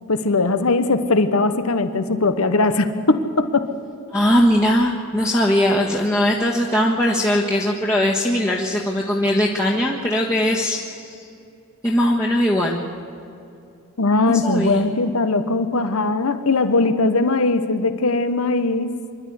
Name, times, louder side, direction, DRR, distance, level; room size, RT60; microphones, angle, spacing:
voice 1, 0.1-3.7 14.0-18.9, left 3 dB, 75° left, 10 dB, 1.1 m, -20 dB
voice 2, 4.1-11.3 11.8-12.8 14.3-14.9, equal, 15° left, -4 dB, 1.5 m, -20 dB
25.0 x 12.0 x 9.6 m, 2.6 s
head